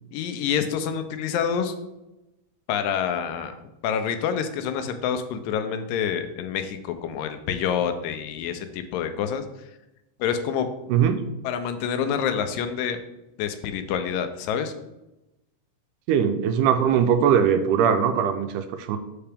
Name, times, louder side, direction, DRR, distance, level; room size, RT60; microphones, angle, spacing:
voice 1, 0.1-1.7 2.7-3.5 3.8-9.4 10.2-10.7 11.4-13.0 13.4-14.7, left 8 dB, 90° left, 8 dB, 2.3 m, -27 dB
voice 2, 10.9-11.2 16.1-19.0, right 8 dB, 80° right, 7 dB, 2.0 m, -21 dB
6.8 x 5.5 x 3.4 m, 0.96 s
omnidirectional pair, 3.8 m